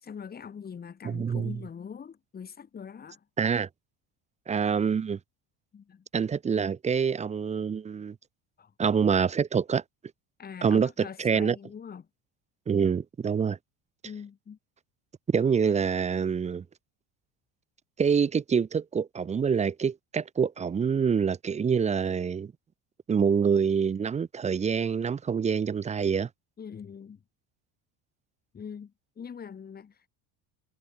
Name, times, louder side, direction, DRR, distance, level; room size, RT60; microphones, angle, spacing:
voice 1, 0.0-3.2 5.7-6.1 8.6-8.7 10.4-12.1 14.0-14.6 26.6-27.2 28.5-30.1, left 7 dB, 20° left, 1.8 m, -43 dB
voice 2, 1.0-1.5 3.4-3.7 4.5-5.2 6.1-8.2 8.8-9.8 10.6-11.6 12.7-13.6 15.3-16.6 18.0-22.5 23.1-26.3, right 6 dB, 15° right, 0.5 m, -26 dB
cardioid pair, 150°, 42 cm